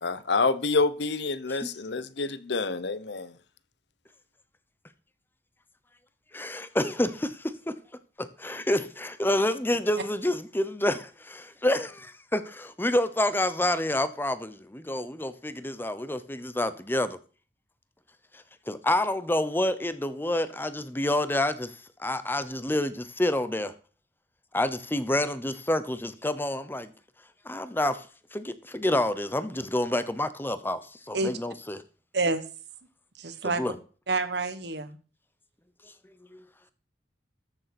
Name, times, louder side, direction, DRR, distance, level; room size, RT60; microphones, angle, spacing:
voice 1, 0.0-3.3, left 3 dB, 70° left, 0.8 m, -27 dB
voice 2, 6.3-7.8 8.2-17.2 18.7-21.7 22.0-23.7 24.5-26.9 27.4-28.0 28.3-30.8 31.1-31.8 33.4-33.7 36.3-36.4, left 1 dB, 10° left, 0.9 m, -28 dB
voice 3, 33.2-33.6 34.1-35.0, right 3 dB, 65° right, 1.4 m, -28 dB
13.5 x 6.8 x 6.0 m
head